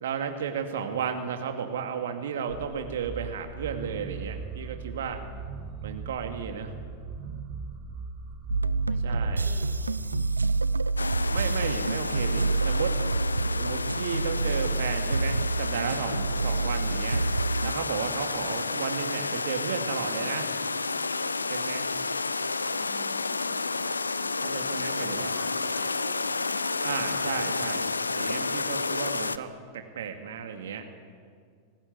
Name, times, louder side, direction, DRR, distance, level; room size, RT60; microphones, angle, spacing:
voice 1, 0.0-5.2 5.8-6.7 9.0-9.5 11.3-13.0 13.6-17.2 17.6-20.5 21.5-21.9 24.4-25.3 26.8-30.9, right 7 dB, 60° right, 6 dB, 2.2 m, -34 dB
sound 1, 2.5-13.4, right 5 dB, 40° right, 4.1 m, -40 dB
voice 2, 5.2-6.0 8.9-10.1 22.7-23.6 24.4-26.7, left 1 dB, 5° left, 3 dB, 4.8 m, -51 dB
sound 2, 8.5-17.8, right 3 dB, 80° right, 0.5 m, -28 dB
sound 3, 11.0-29.4, left 3 dB, 80° left, 0.8 m, -31 dB
24.5 x 19.5 x 9.5 m, 2.1 s
figure-of-eight pair, 90°, 0 cm